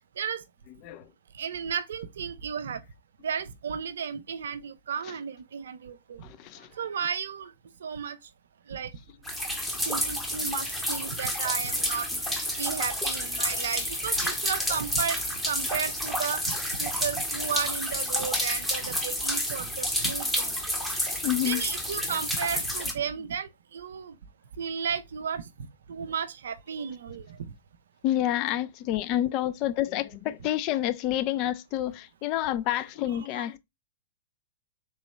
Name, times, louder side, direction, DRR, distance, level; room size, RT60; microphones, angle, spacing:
voice 1, 0.7-1.1 5.0-5.2 6.2-6.7 9.3-9.4 10.3-10.5 12.1-12.2 15.6-15.7 21.2-22.2 28.0-33.6, left 13 dB, 35° left, 0.3 m, -29 dB
voice 2, 1.3-2.8 3.2-6.2 6.7-7.5 7.8-8.2 8.7-8.9 9.9-12.1 12.3-16.5 16.8-20.6 21.5-24.2 24.6-25.4 25.9-27.4 33.4-33.5, right 7 dB, 60° right, 0.4 m, -34 dB
sound 1, 9.2-22.9, equal, 5° left, 0.8 m, -30 dB
3.6 x 3.0 x 3.0 m
figure-of-eight pair, 105°, 0 cm